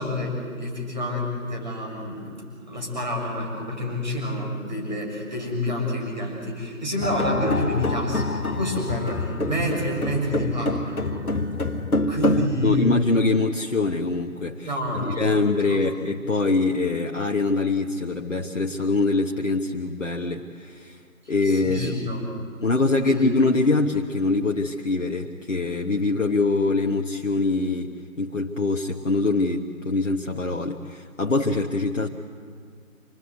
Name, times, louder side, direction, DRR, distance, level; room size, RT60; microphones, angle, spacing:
voice 1, 0.0-11.3 12.1-12.9 14.6-15.8 21.4-22.4 23.0-23.4, left 1 dB, 30° right, -1 dB, 6.3 m, -29 dB
sound 1, 7.0-12.5, left 2 dB, 85° left, 1.5 m, -26 dB
voice 2, 12.6-21.0 21.3-22.0 22.6-27.9 28.2-32.1, left 3 dB, 55° left, 1 dB, 1.4 m, -24 dB
26.5 x 20.0 x 8.2 m, 2.2 s
figure-of-eight pair, 175°, 43 cm